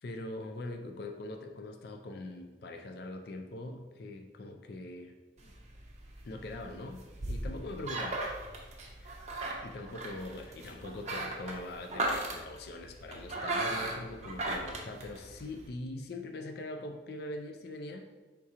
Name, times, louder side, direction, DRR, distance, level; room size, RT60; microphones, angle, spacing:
voice 1, 0.0-5.2 6.2-8.2 9.0-9.2 9.6-18.1, left 2 dB, 55° left, 5 dB, 0.4 m, -42 dB
sound 1, 5.4-15.7, right 2 dB, 40° right, 0.6 m, -37 dB
3.6 x 2.8 x 4.7 m, 1.3 s
head